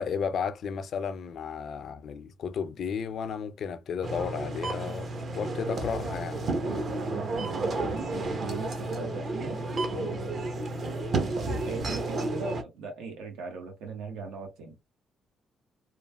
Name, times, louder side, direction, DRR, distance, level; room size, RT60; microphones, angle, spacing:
voice 1, 0.0-6.5, left 6 dB, 65° left, 0.4 m, -33 dB
sound 1, 4.0-12.6, right 2 dB, 50° right, 0.7 m, -32 dB
voice 2, 6.6-10.7 11.4-14.8, right 3 dB, 85° right, 0.9 m, -39 dB
3.1 x 2.3 x 2.2 m
cardioid pair, 90°, 0 cm